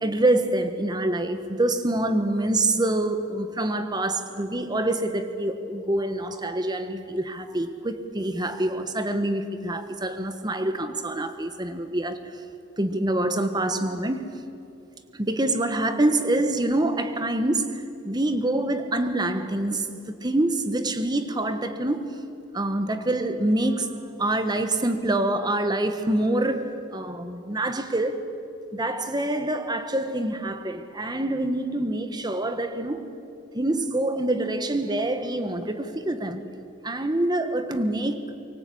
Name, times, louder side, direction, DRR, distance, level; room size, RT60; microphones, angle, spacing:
voice 1, 0.0-12.4 12.8-14.4 15.1-22.2 22.5-28.3 28.7-33.1 33.5-36.4 36.8-38.2, right 1 dB, 25° right, 1.3 m, -26 dB
25.0 x 24.0 x 8.7 m
head